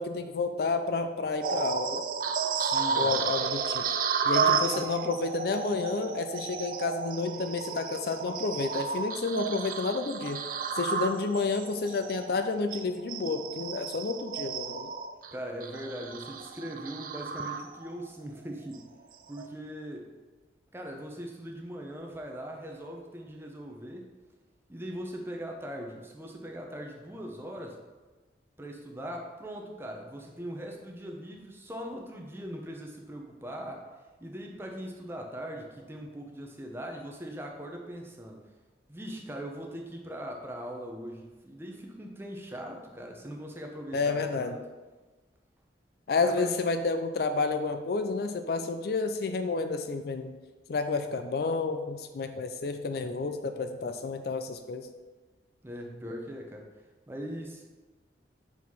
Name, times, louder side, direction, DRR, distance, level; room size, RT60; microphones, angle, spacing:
voice 1, 0.0-2.0 2.9-3.8 4.2-10.4 10.8-14.9 43.9-44.6 46.1-50.4 50.7-54.9, left 3 dB, 55° left, 8 dB, 0.4 m, -30 dB
sound 1, 1.4-18.1 18.5-18.7 19.3-19.5, right 5 dB, 50° right, 0.4 m, -32 dB
voice 2, 2.5-3.3 4.4-4.9 15.3-18.8 19.3-20.1 20.7-24.1 24.7-27.8 28.6-33.9 34.2-38.4 38.9-44.6 46.2-46.6 55.6-56.7 57.1-57.6, equal, 15° right, 1 dB, 0.7 m, -40 dB
4.7 x 4.0 x 5.5 m, 1.2 s
head